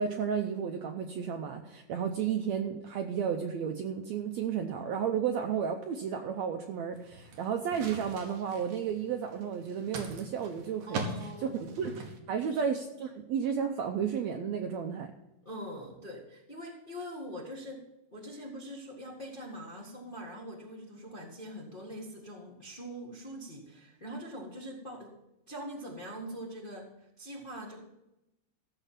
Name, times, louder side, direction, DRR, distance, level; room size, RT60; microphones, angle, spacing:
voice 1, 0.0-12.0 12.3-15.1, right 7 dB, 80° right, 5 dB, 1.5 m, -33 dB
sound 1, 6.9-12.2, right 3 dB, 65° right, 2.6 m, -41 dB
voice 2, 10.9-11.6 12.5-12.7 15.4-17.8 18.1-25.1 25.5-26.9 27.2-27.8, equal, 40° left, -2 dB, 0.7 m, -43 dB
15.0 x 6.9 x 5.8 m, 0.92 s
omnidirectional pair, 4.0 m